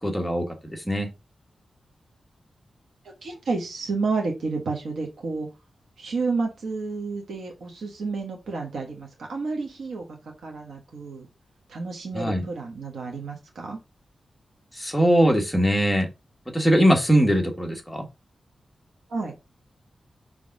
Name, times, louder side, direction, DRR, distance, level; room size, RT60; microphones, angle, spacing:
voice 1, 0.0-1.1 12.1-12.4 14.7-16.1 16.5-18.0, equal, 5° left, 1.4 m, -21 dB
voice 2, 3.0-5.5 6.0-11.3 11.7-13.8 19.1-19.3, right 4 dB, 90° right, 1.3 m, -30 dB
5.3 x 3.4 x 5.4 m
wide cardioid pair, 145°, 0 cm